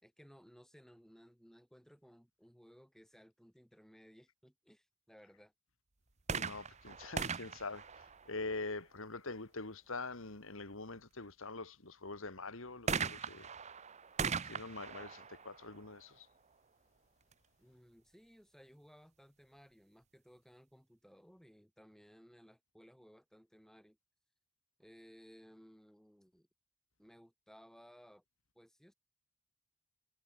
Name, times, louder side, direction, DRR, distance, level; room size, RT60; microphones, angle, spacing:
voice 1, 0.0-5.5 17.6-24.0 24.8-26.5 27.0-28.2 28.5-28.9, equal, ahead, 5.1 m, -61 dB
sound 1, 6.2-8.8 12.9-16.5 17.3-17.4, right 5 dB, 30° right, 0.8 m, -40 dB
voice 2, 6.3-13.5 14.4-16.3, left 3 dB, 60° left, 2.2 m, -44 dB
head